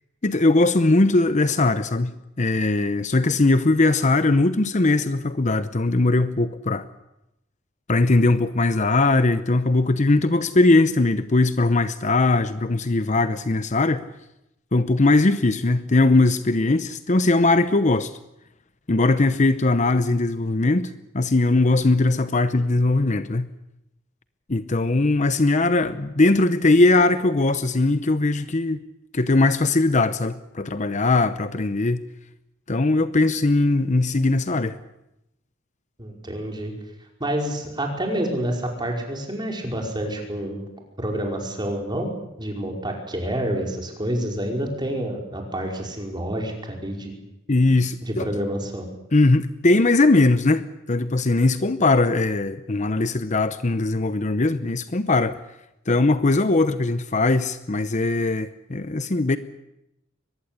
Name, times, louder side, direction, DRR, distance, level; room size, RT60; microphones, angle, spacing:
voice 1, 0.2-6.8 7.9-14.0 14.7-18.1 18.9-23.5 24.5-28.8 29.1-32.0 32.7-34.8 47.5-48.3 49.1-55.4 55.9-59.4, left 2 dB, 35° left, 0.8 m, -20 dB
voice 2, 36.0-36.7 37.2-40.7 41.0-42.1 42.4-47.1 48.0-48.9, right 1 dB, 20° right, 5.2 m, -28 dB
23.0 x 19.5 x 8.4 m
head